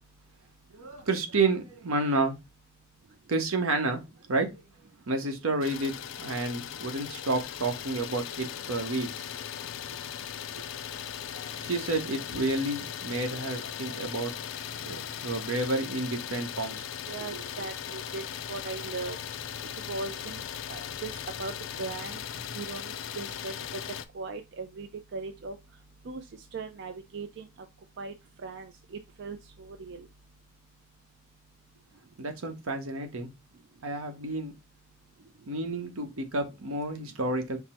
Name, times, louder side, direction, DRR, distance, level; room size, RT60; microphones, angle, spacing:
voice 1, 0.7-2.4 3.3-4.0 4.3-4.6 5.1-5.9 6.2-9.1 10.5-10.6 11.6-14.3 14.8-16.8 17.2-17.3 32.2-33.3 33.8-34.5 35.5-37.6, right 2 dB, 80° right, 1.0 m, -30 dB
Idling, 5.6-24.1, left 9 dB, 65° left, 0.4 m, -38 dB
voice 2, 17.1-18.2 18.5-19.2 19.9-20.4 20.7-22.2 22.5-23.5 24.1-25.6 26.1-26.2 26.5-27.5 28.0-28.1 28.4-28.7 29.2-30.1, right 4 dB, 55° right, 0.4 m, -38 dB
5.8 x 2.0 x 4.3 m
head